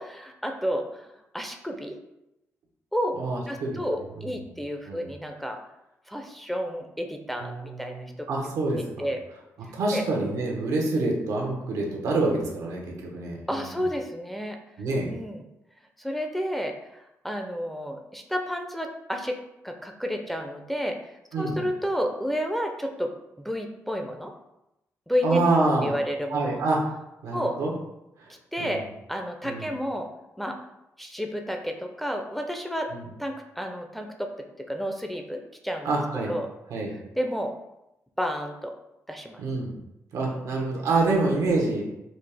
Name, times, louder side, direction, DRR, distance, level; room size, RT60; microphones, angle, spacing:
voice 1, 0.0-2.0 2.9-3.1 3.5-5.6 6.1-8.3 8.7-9.2 9.9-10.0 13.5-14.6 15.1-15.5 16.0-19.4 19.6-21.1 21.4-23.1 23.4-24.3 25.1-25.4 25.8-26.6 27.3-27.6 28.5-28.8 29.1-30.1 30.4-30.6 31.0-32.9 33.2-35.9 36.3-36.5 37.1-37.5 38.2-38.7 39.1-39.4 40.3-40.5, equal, 5° left, 3 dB, 0.5 m, -31 dB
voice 2, 3.1-3.9 4.2-4.3 4.9-5.1 7.4-9.1 9.7-13.7 14.8-15.1 21.3-21.6 25.2-25.9 26.3-26.8 27.2-27.7 28.2-28.3 28.6-28.8 29.4-29.6 32.9-33.0 35.8-36.3 36.7-36.9 39.4-39.7 40.1-41.8, right 2 dB, 90° right, -1 dB, 0.9 m, -27 dB
4.1 x 2.4 x 3.4 m, 0.88 s
cardioid pair, 70°, 6 cm